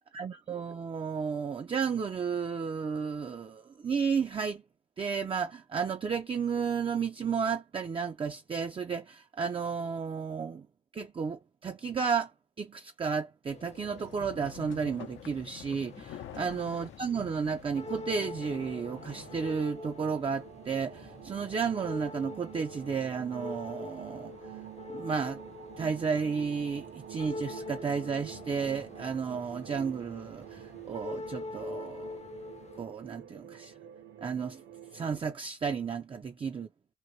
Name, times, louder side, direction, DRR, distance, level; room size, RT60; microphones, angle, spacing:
voice 1, 0.1-4.6 5.0-10.7 10.9-12.3 12.6-24.3 24.9-25.4 25.8-32.1 32.8-33.7 34.2-34.6 34.9-36.7, right 6 dB, 25° right, 0.4 m, -33 dB
sound 1, 13.5-32.9, left 3 dB, 35° left, 0.6 m, -45 dB
sound 2, 13.8-19.6, left 10 dB, 75° left, 0.7 m, -48 dB
sound 3, 17.7-35.2, right 10 dB, 70° right, 0.9 m, -48 dB
2.9 x 2.6 x 2.7 m
cardioid pair, 90°, 20 cm